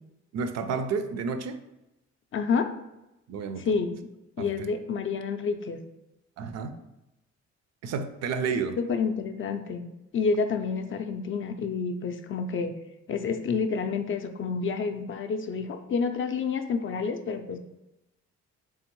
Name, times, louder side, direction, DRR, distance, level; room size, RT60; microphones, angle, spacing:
voice 1, 0.3-1.6 3.3-3.7 4.4-4.7 6.4-6.8 7.8-8.8, right 5 dB, 60° right, 9 dB, 0.4 m, -31 dB
voice 2, 2.3-2.7 3.7-3.9 4.4-5.8 8.8-9.9 10.1-12.7 13.1-17.6, left 5 dB, 45° left, 6 dB, 0.4 m, -29 dB
3.5 x 3.4 x 3.0 m, 0.93 s
cardioid pair, 90°, 30 cm